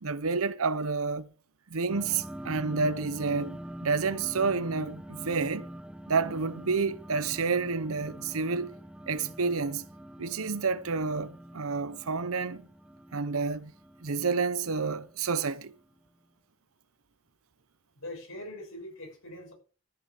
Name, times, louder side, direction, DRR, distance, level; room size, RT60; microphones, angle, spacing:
voice 1, 0.0-1.3 1.7-5.7 6.1-8.7 9.1-9.9 10.2-12.7 13.1-13.7 14.0-15.7, right 4 dB, 90° right, 0.8 m, -29 dB
sound 1, 1.9-15.9, equal, 5° right, 0.8 m, -45 dB
voice 2, 17.9-19.5, left 1 dB, 80° left, 6.7 m, -42 dB
13.5 x 6.5 x 7.6 m
head